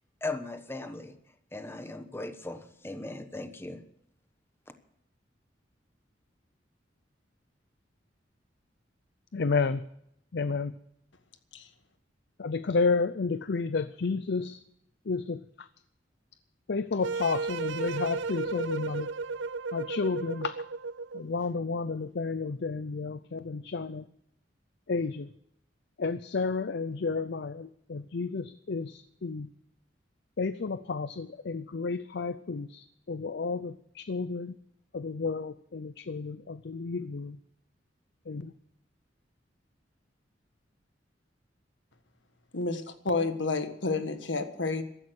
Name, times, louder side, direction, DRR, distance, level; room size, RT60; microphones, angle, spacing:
voice 1, 0.2-1.2 1.5-3.8, left 2 dB, 15° left, 9 dB, 1.1 m, -38 dB
voice 2, 9.3-9.8 10.3-10.7 12.4-14.6 15.1-15.7 16.7-19.1 19.7-20.6 21.1-24.1 24.9-25.3 26.0-29.5 30.4-34.5 34.9-37.4 38.3-38.5, left 4 dB, 65° left, 14 dB, 0.6 m, -31 dB
sound 1, 17.0-21.3, right 4 dB, 85° right, 0.6 m, -34 dB
voice 3, 42.5-44.8, left 3 dB, 85° left, 9 dB, 1.6 m, -30 dB
15.5 x 13.0 x 6.5 m, 0.74 s
head